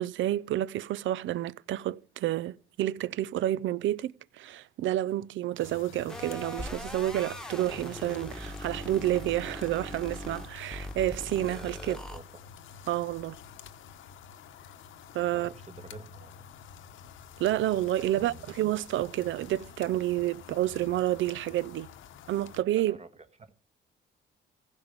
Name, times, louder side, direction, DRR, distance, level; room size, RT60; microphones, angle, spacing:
voice 1, 0.0-12.0 12.9-13.4 15.1-15.5 17.4-21.9 22.3-23.0, right 14 dB, 75° right, 0.5 m, -29 dB
sound 1, 5.6-22.6, left 7 dB, 80° left, 1.0 m, -49 dB
sound 2, 6.1-12.2, left 1 dB, 5° left, 1.3 m, -41 dB
voice 2, 11.9-12.4 15.3-16.3 18.1-18.5 22.8-23.5, right 3 dB, 35° right, 1.6 m, -48 dB
15.5 x 5.4 x 8.2 m
cardioid pair, 90°, 20 cm